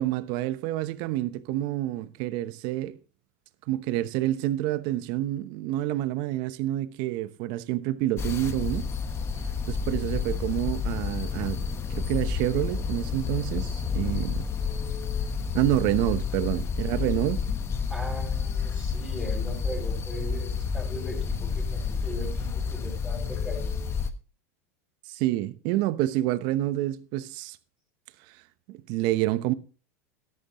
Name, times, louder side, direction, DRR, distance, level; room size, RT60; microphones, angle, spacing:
voice 1, 0.0-3.0 3.7-8.9 9.6-11.6 11.9-14.5 15.5-17.4 25.1-27.6 28.7-29.5, right 15 dB, 60° right, 0.9 m, -28 dB
sound 1, 8.2-24.1, left 6 dB, 30° left, 1.2 m, -30 dB
voice 2, 17.9-23.9, equal, 10° left, 5.7 m, -39 dB
12.5 x 11.5 x 3.0 m
hypercardioid pair, 100°, 9 cm